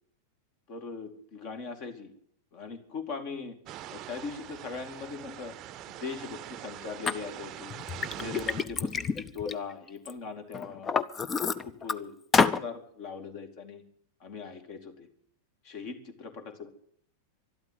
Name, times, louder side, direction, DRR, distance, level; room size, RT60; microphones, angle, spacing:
voice 1, 0.7-2.1 2.5-3.6 3.9-5.5 5.9-7.7 8.1-11.0 11.6-13.8 14.2-15.1 15.6-16.7, left 5 dB, 45° left, 7 dB, 2.3 m, -40 dB
sound 1, 3.7-8.6, right 13 dB, 35° right, 0.7 m, -43 dB
Liquid, 7.1-7.2 7.7-10.1 10.5-11.9 12.3-12.6, left 5 dB, 20° left, 0.7 m, -28 dB
12.5 x 12.0 x 9.2 m, 0.64 s
figure-of-eight pair, 90°, 0 cm